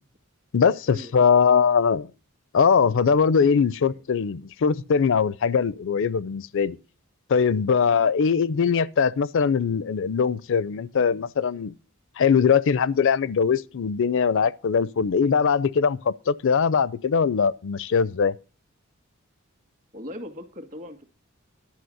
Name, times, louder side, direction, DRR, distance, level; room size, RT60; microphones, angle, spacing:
voice 1, 0.5-2.1 2.5-6.8 7.3-11.7 12.2-18.3, left 6 dB, 65° left, 0.4 m, -21 dB
voice 2, 19.9-21.1, left 1 dB, 40° right, 1.9 m, -40 dB
11.5 x 5.9 x 7.8 m
head